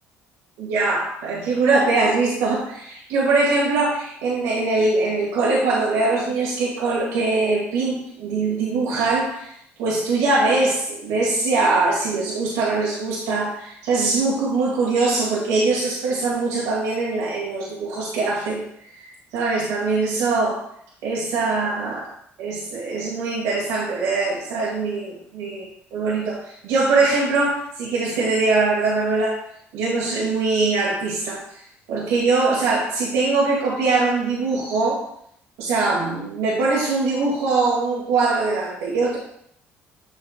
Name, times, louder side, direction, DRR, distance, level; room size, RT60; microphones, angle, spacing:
voice 1, 0.6-9.5 9.8-18.6 19.0-19.1 19.3-20.7 21.0-22.1 22.4-25.6 25.9-29.4 29.7-31.4 31.9-35.0 35.6-39.2, right 3 dB, 80° right, -6 dB, 2.2 m, -22 dB
7.2 x 6.5 x 2.4 m, 0.69 s
supercardioid pair, 70°, 6 cm